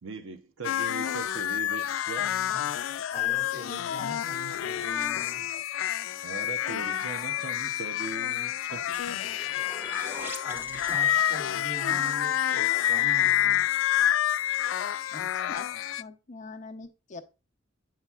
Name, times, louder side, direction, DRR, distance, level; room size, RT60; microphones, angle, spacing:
voice 1, 0.0-2.7 6.2-9.2 9.6-9.7, right 4 dB, 90° right, 0.7 m, -40 dB
sound 1, 0.6-16.0, left 12 dB, 85° left, 0.3 m, -28 dB
voice 2, 2.5-5.5 9.5-9.7 10.4-13.7, right 2 dB, 35° right, 2.5 m, -43 dB
sound 2, 8.8-11.8, left 1 dB, 10° right, 1.1 m, -42 dB
voice 3, 15.1-15.7 16.0-17.4, left 4 dB, 40° left, 0.6 m, -43 dB
8.1 x 5.7 x 2.3 m
head